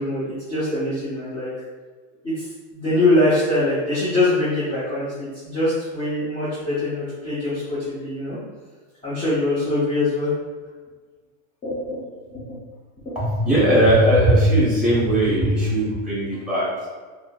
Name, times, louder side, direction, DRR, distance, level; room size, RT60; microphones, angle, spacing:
voice 1, 0.0-1.5 2.2-8.4 9.0-10.3 11.6-12.6 13.0-13.6, left 2 dB, 15° left, -12 dB, 0.8 m, -23 dB
voice 2, 13.1-16.9, right 1 dB, ahead, -10 dB, 1.2 m, -18 dB
4.4 x 2.1 x 2.3 m, 1.4 s
supercardioid pair, 150°, 38 cm